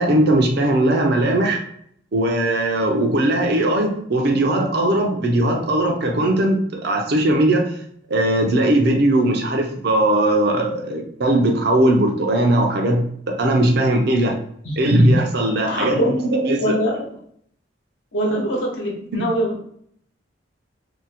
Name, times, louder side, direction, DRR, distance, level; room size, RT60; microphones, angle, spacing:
voice 1, 0.0-1.6 2.1-7.7 8.1-14.4 14.8-16.7 19.1-19.2, right 1 dB, 60° right, 2 dB, 0.6 m, -19 dB
voice 2, 15.6-16.1 16.6-17.1 18.1-19.6, equal, 85° left, -2 dB, 1.0 m, -23 dB
2.8 x 2.1 x 4.1 m, 0.66 s
head